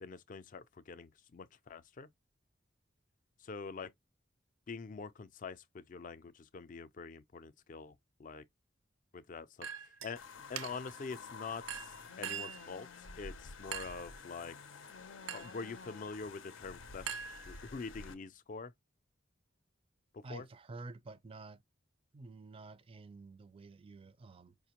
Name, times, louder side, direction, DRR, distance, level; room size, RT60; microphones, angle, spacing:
voice 1, 0.0-2.1 3.4-3.9 4.7-7.9 8.2-8.4 9.1-10.2 10.5-11.9 12.2-12.9 13.1-14.5 15.3-18.7 20.1-20.5, left 4 dB, 40° left, 0.4 m, -45 dB
Chink clink, 9.6-10.1 10.6-11.0 11.7-12.7 13.7-14.1 15.3-15.6 17.1-17.9, right 8 dB, 80° right, 0.5 m, -43 dB
sound 1, 10.2-18.1, left 4 dB, 85° left, 0.6 m, -50 dB
voice 2, 20.2-21.6 22.1-24.6, right 3 dB, 30° right, 0.4 m, -50 dB
4.9 x 2.1 x 2.9 m
head